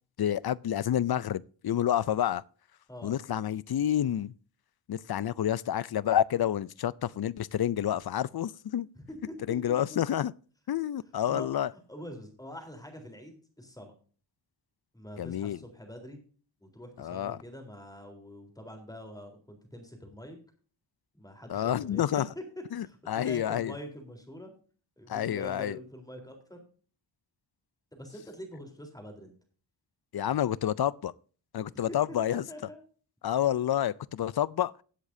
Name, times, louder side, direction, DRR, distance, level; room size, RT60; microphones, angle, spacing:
voice 1, 0.2-2.4 3.0-4.3 4.9-8.9 9.5-10.3 10.7-11.7 15.2-15.6 17.0-17.4 21.5-22.3 22.7-23.8 25.1-25.8 30.1-31.1 31.5-32.5 33.2-34.7, left 10 dB, 55° left, 0.5 m, -29 dB
voice 2, 9.0-9.4 9.9-10.0 11.2-13.9 14.9-16.2 16.6-20.4 21.1-22.0 22.4-22.5 22.8-24.5 25.0-26.6 27.9-29.3 31.9-32.0 32.3-32.8, equal, 10° left, 3.7 m, -45 dB
18.0 x 8.2 x 2.7 m
wide cardioid pair, 120°, 45 cm